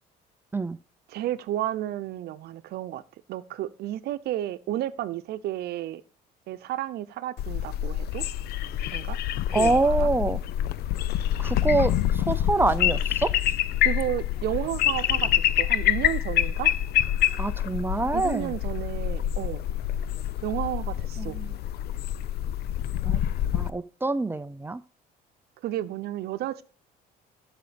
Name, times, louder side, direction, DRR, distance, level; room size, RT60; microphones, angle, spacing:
voice 1, 1.1-3.0 3.3-6.0 6.5-8.2 8.9-9.2 9.5-10.1 13.8-15.3 15.6-16.7 18.1-19.6 20.4-21.4 25.6-26.6, right 13 dB, 75° right, 0.8 m, -32 dB
sound 1, 7.4-23.7, left 12 dB, 70° left, 0.6 m, -26 dB
voice 2, 9.5-10.4 11.4-13.3 17.4-18.5 21.2-21.5 23.0-23.2 23.5-24.8, right 3 dB, 15° right, 0.5 m, -26 dB
13.5 x 5.2 x 5.1 m
cardioid pair, 110°, 17 cm